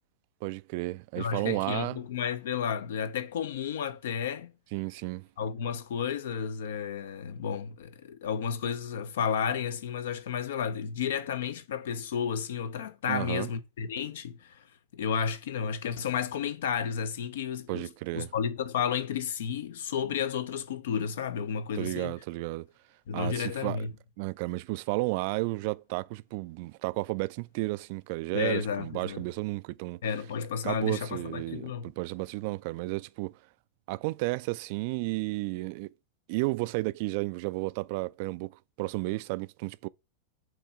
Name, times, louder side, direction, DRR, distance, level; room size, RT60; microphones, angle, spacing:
voice 1, 0.4-2.0 4.7-5.3 13.1-13.5 17.7-18.3 21.7-22.7 23.1-23.8 24.2-30.0 30.6-33.3 33.9-35.9 36.3-38.5 38.8-39.9, right 22 dB, 45° right, 0.3 m, -32 dB
voice 2, 1.2-4.5 5.4-14.6 14.9-22.1 23.1-23.9 28.3-29.2 30.0-31.9, left 7 dB, 60° left, 0.7 m, -32 dB
7.8 x 3.1 x 5.4 m
figure-of-eight pair, 90°, 0 cm